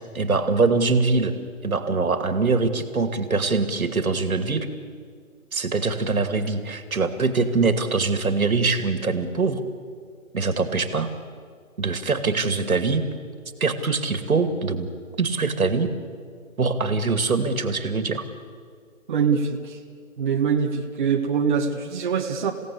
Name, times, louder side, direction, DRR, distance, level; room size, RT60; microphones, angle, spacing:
voice 1, 0.1-1.3 1.6-4.7 5.5-9.6 10.3-11.1 11.8-13.1 13.6-14.9 15.2-15.9 16.6-18.2, right 4 dB, 75° right, 9 dB, 2.4 m, -23 dB
voice 2, 19.1-19.8 20.2-22.5, right 6 dB, 35° right, 1 dB, 1.5 m, -23 dB
29.0 x 17.0 x 8.4 m, 2.1 s
figure-of-eight pair, 160°, 42 cm